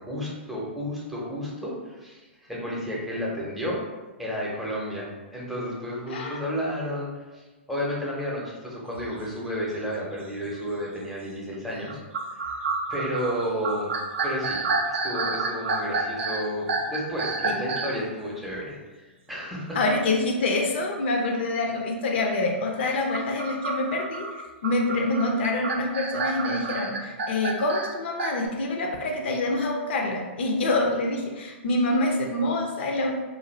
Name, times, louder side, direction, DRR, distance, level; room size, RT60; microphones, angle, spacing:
voice 1, 0.0-3.8 4.2-12.0 12.9-13.9 14.2-14.6 14.9-19.8, equal, ahead, -5 dB, 0.7 m, -32 dB
voice 2, 6.1-6.4 17.4-17.5 19.7-33.1, left 2 dB, 60° left, 1 dB, 0.5 m, -26 dB
sound 1, 8.9-9.1 9.7-9.8 10.4-10.8 11.9-18.0 22.9-28.5, right 4 dB, 75° right, 0.4 m, -29 dB
2.5 x 2.3 x 3.1 m, 1.2 s
hypercardioid pair, 115°, 7 cm